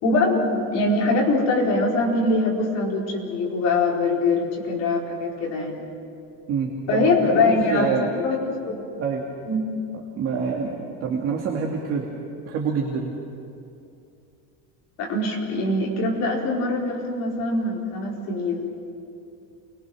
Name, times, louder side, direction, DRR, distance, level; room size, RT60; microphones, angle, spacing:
voice 1, 0.0-5.8 6.9-8.4 8.6-8.8 9.4-9.6 15.0-18.7, left 2 dB, 45° left, -2 dB, 4.8 m, -23 dB
voice 2, 6.5-7.1 7.4-8.1 9.0-9.2 10.2-12.0 12.5-13.1, right 6 dB, 35° right, -1 dB, 2.5 m, -26 dB
29.0 x 22.5 x 6.3 m, 2.6 s
cardioid pair, 170°, 37 cm